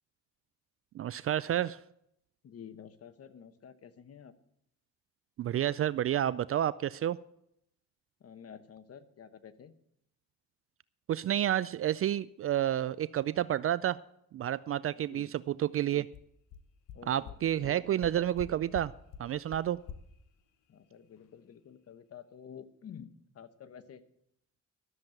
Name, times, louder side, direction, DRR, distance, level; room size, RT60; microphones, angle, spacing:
voice 1, 0.9-1.8 5.4-7.2 11.1-14.0 14.3-16.1 17.1-18.9 19.2-19.8, right 11 dB, 50° right, 17 dB, 0.4 m, -30 dB
voice 2, 2.4-4.3 8.2-9.7 15.1-15.3 16.9-18.0 20.7-23.1 23.3-24.0, left 8 dB, 50° left, 11 dB, 1.2 m, -50 dB
sound 1, 16.1-16.2 16.5-16.6 16.9-17.0 17.3-17.4 17.6-17.7 18.0-18.5 18.7-18.9 19.1-19.2 19.5-19.6 19.9-20.0, left 8 dB, 85° left, 1.0 m, -43 dB
13.0 x 7.4 x 7.8 m, 0.76 s
cardioid pair, 90°, 30 cm